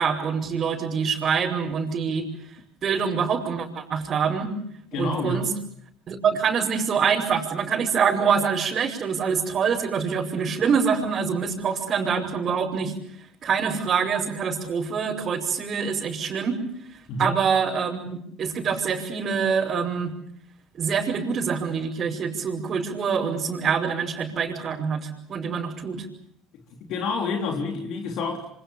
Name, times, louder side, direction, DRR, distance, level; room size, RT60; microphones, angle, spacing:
voice 1, 0.0-2.5 2.8-4.5 4.9-5.5 6.1-12.9 13.4-18.0 18.4-20.1 20.8-26.1, right 6 dB, 40° right, -4 dB, 5.7 m, -25 dB
voice 2, 4.9-5.5 17.1-17.4 26.8-28.5, left 3 dB, 60° left, 2 dB, 3.6 m, -28 dB
28.5 x 26.0 x 7.3 m, 0.71 s
supercardioid pair, 90°, 0 cm